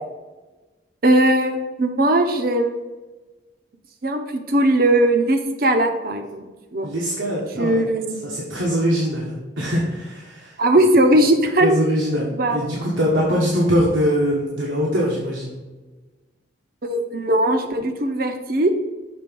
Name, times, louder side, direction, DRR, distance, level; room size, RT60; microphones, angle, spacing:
voice 1, 1.0-2.8 4.0-6.9 7.5-8.2 10.6-11.8 12.3-12.7 16.8-18.7, right 1 dB, 50° right, 6 dB, 0.7 m, -19 dB
voice 2, 6.8-7.8 8.2-10.6 11.6-15.6, equal, 85° right, -4 dB, 1.3 m, -22 dB
6.8 x 3.9 x 5.3 m, 1.2 s
head